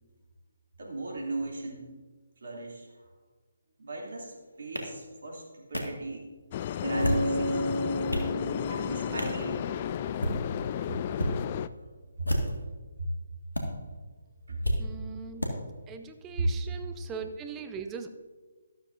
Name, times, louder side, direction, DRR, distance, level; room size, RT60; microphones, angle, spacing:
voice 1, 0.8-1.9 2.4-3.1 3.8-6.3 6.7-7.7 8.7-9.7 11.7-11.9 12.2-12.3 13.0-13.1 14.5-14.6 16.4-16.5, right 3 dB, 60° right, -2 dB, 3.1 m, -38 dB
sound 1, 4.8-4.9 5.7-5.8 6.8-7.3 7.8-8.3 9.2-9.4 10.1-10.4 11.1-11.3 12.2-12.7 13.5-13.6 14.6-14.8 15.4-15.5, equal, 90° left, 2.0 m, -30 dB
sound 2, 6.5-11.7, left 10 dB, 35° left, 0.3 m, -33 dB
Bass guitar, 6.8-10.5, equal, 75° right, 3.6 m, -33 dB
voice 2, 14.8-15.4 15.9-18.1, right 5 dB, 15° right, 7 dB, 0.8 m, -40 dB
13.0 x 12.5 x 2.7 m, 1.3 s
figure-of-eight pair, 145°, 0 cm